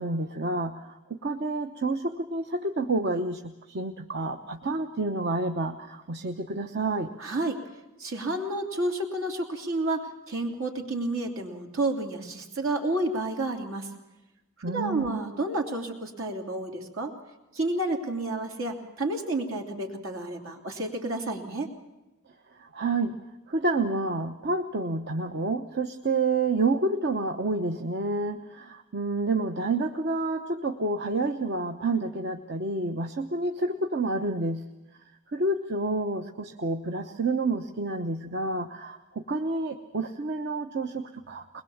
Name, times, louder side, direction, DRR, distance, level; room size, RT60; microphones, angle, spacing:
voice 1, 0.0-7.1 14.6-15.2 22.6-23.2 23.5-34.6 35.3-41.6, right 3 dB, 55° right, 6 dB, 1.0 m, -29 dB
voice 2, 7.2-7.6 8.0-13.9 14.6-17.1 17.5-21.7, right 2 dB, 70° right, 3 dB, 3.1 m, -30 dB
22.5 x 21.0 x 7.2 m, 1.1 s
head